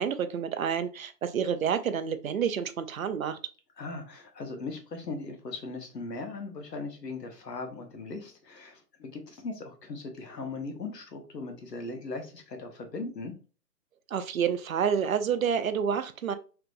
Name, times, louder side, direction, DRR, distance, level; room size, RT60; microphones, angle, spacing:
voice 1, 0.0-3.4 14.1-16.4, right 7 dB, 60° right, 10 dB, 0.5 m, -29 dB
voice 2, 3.8-13.3, left 3 dB, 90° left, 4 dB, 1.2 m, -39 dB
3.3 x 2.9 x 2.5 m, 0.36 s
hypercardioid pair, 165°, 48 cm